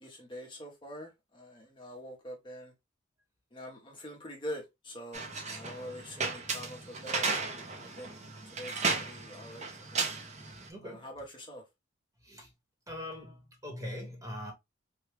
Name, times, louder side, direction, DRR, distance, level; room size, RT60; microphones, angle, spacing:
voice 1, 0.0-2.7 3.5-7.3 7.7-8.1 8.5-10.1 10.8-11.6, equal, 25° left, 0.8 m, -45 dB
sound 1, 5.1-10.7, right 4 dB, 35° right, 0.6 m, -35 dB
voice 2, 10.7-11.1 12.2-12.5 12.9-14.5, left 1 dB, 15° right, 1.1 m, -42 dB
3.4 x 2.2 x 3.2 m
head